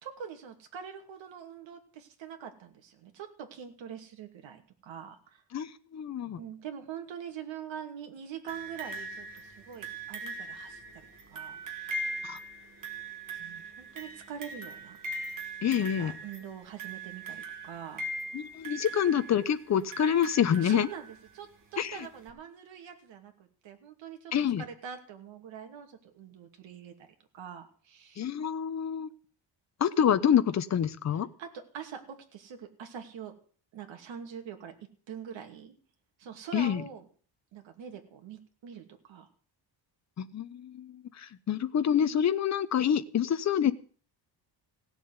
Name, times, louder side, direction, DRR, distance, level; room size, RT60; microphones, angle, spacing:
voice 1, 0.0-5.4 6.2-12.1 13.4-15.0 16.0-18.1 20.6-24.3 24.6-27.1 27.3-28.3 31.4-33.3 33.7-34.7 35.1-35.7 36.2-37.1 37.5-39.3, right 8 dB, 70° right, 5 dB, 2.6 m, -44 dB
voice 2, 5.5-6.4 12.2-12.4 15.6-16.2 18.3-20.9 21.8-22.0 24.3-24.6 28.2-29.1 29.8-31.3 36.5-36.8 40.2-43.7, left 9 dB, 35° left, 12 dB, 0.9 m, -27 dB
sound 1, 8.5-21.3 22.3-22.4, right 2 dB, 40° right, 2.9 m, -40 dB
16.5 x 7.2 x 9.7 m, 0.42 s
cardioid pair, 180°, 47 cm